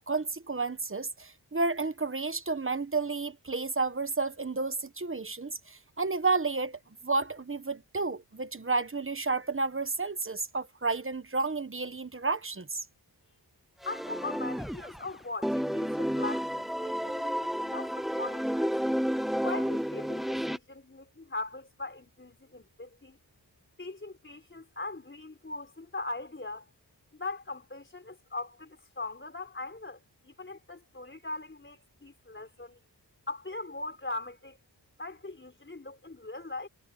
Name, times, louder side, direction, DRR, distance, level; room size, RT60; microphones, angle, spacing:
voice 1, 0.0-12.8, right 3 dB, 30° right, 1.1 m, -31 dB
voice 2, 13.8-18.7 19.4-23.2 23.8-26.7 27.1-32.8 33.3-34.6 35.0-36.7, left 2 dB, 25° left, 3.9 m, -40 dB
sound 1, 13.8-15.1 15.4-20.6, equal, ahead, 0.3 m, -31 dB
wide cardioid pair, 90°, 43 cm